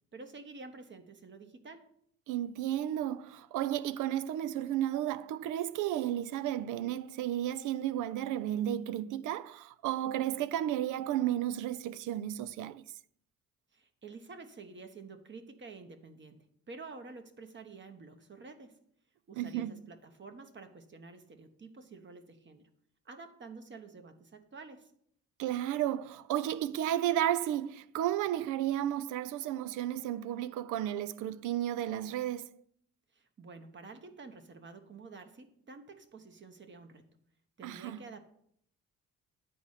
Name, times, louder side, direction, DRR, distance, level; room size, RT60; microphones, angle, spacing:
voice 1, 0.1-1.9 13.7-18.8 19.3-22.7 23.0-24.9 33.1-37.1 37.6-38.3, right 4 dB, 40° right, 1.1 m, -50 dB
voice 2, 2.3-12.8 19.4-19.8 25.4-32.6 37.6-38.0, right 12 dB, 80° right, 0.5 m, -33 dB
9.3 x 4.2 x 6.5 m
cardioid pair, 90°, 30 cm